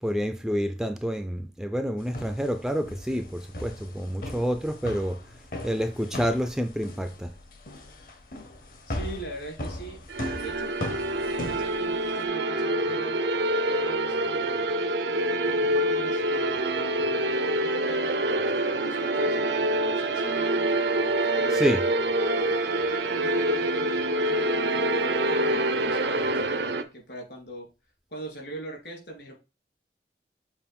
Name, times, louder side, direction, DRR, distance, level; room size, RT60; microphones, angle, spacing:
voice 1, 0.0-5.2 5.6-7.3 21.5-21.9, equal, ahead, 0.4 m, -28 dB
sound 1, 2.0-12.2, left 1 dB, 50° left, 1.0 m, -38 dB
voice 2, 8.9-10.0 10.3-10.8 11.3-13.4 13.7-14.6 15.5-20.6 21.3-21.7 23.1-27.7 28.1-29.3, right 1 dB, 70° left, 3.2 m, -42 dB
sound 2, 10.1-26.8, right 1 dB, 75° right, 0.7 m, -26 dB
7.1 x 2.5 x 5.3 m
head